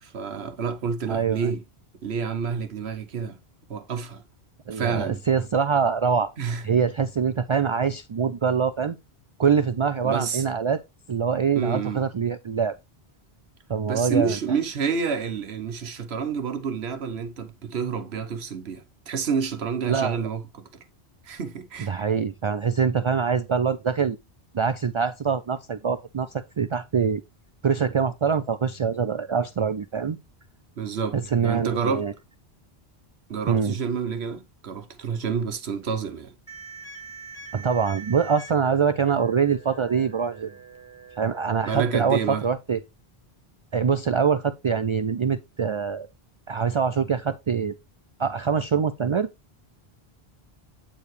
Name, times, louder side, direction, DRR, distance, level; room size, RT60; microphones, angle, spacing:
voice 1, 0.1-1.6 2.0-3.4 3.7-4.2 4.7-5.2 6.4-6.6 10.0-10.4 11.5-12.0 13.9-20.7 21.2-22.0 30.8-31.2 31.4-32.0 33.3-36.3 41.7-42.4, right 6 dB, 90° right, 1.2 m, -29 dB
voice 2, 1.1-1.5 4.7-6.3 6.6-9.0 9.4-10.8 11.1-12.8 13.7-14.4 19.9-20.2 21.8-24.2 24.5-27.2 27.6-30.2 31.1-32.1 33.5-33.7 37.5-40.5 41.2-42.8 43.7-46.1 46.5-47.7 48.2-49.3, right 6 dB, 50° right, 0.3 m, -24 dB
sound 1, 36.5-42.5, right 3 dB, 15° right, 1.4 m, -44 dB
8.7 x 4.6 x 3.2 m
omnidirectional pair, 1.0 m